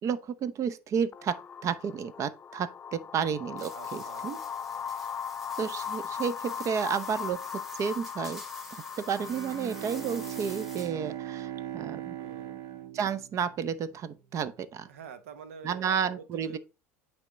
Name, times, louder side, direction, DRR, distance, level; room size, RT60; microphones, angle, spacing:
voice 1, 0.0-4.4 5.6-7.4 7.7-8.4 8.7-12.2 12.9-14.9 15.6-16.6, right 7 dB, 45° right, 0.8 m, -32 dB
sound 1, 1.1-10.6, left 7 dB, 25° left, 0.3 m, -39 dB
sound 2, 3.6-11.1, left 1 dB, 5° right, 1.9 m, -48 dB
voice 2, 3.7-4.4 12.2-12.6 14.9-16.6, right 6 dB, 80° right, 1.0 m, -47 dB
Bowed string instrument, 9.1-13.9, right 11 dB, 65° right, 1.3 m, -39 dB
9.0 x 3.6 x 3.9 m
hypercardioid pair, 85°, 7 cm